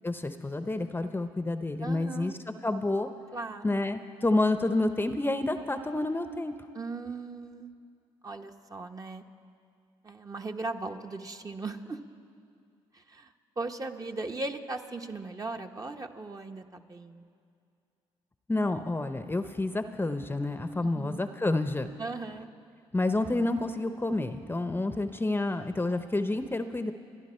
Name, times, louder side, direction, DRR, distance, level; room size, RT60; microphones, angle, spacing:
voice 1, 0.0-2.3 2.6-3.1 3.6-6.5 18.5-21.9 22.9-26.9, left 2 dB, 15° left, 9 dB, 0.8 m, -29 dB
voice 2, 1.8-2.4 3.3-3.8 6.7-7.8 8.2-9.2 10.0-12.0 12.9-17.2 20.8-21.3 22.0-22.5, right 3 dB, 30° right, 5 dB, 1.0 m, -38 dB
29.0 x 10.5 x 4.4 m, 2.4 s
supercardioid pair, 60°, 12 cm